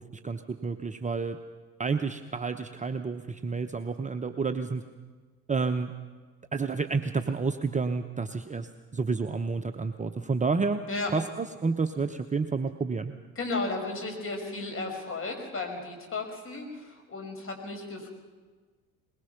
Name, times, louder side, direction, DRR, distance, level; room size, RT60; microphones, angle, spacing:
voice 1, 0.0-1.4 1.8-4.8 5.5-5.9 6.5-10.8 11.1-13.1, right 4 dB, 15° right, 8 dB, 0.9 m, -30 dB
voice 2, 13.4-18.1, left 3 dB, 30° left, 3 dB, 5.8 m, -34 dB
22.0 x 21.0 x 5.9 m, 1.4 s
figure-of-eight pair, 60°, 42 cm